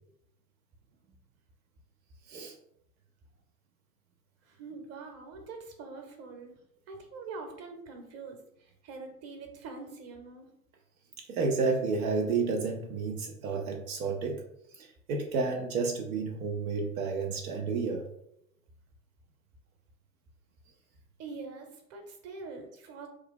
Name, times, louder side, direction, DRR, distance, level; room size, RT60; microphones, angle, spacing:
voice 1, 4.5-6.5 6.9-10.5 21.2-23.1, right 4 dB, 35° right, 4 dB, 0.9 m, -44 dB
voice 2, 11.3-14.4 14.7-18.1, right 4 dB, 75° right, 2 dB, 0.6 m, -31 dB
3.2 x 2.3 x 3.6 m, 0.78 s
figure-of-eight pair, 70°, 44 cm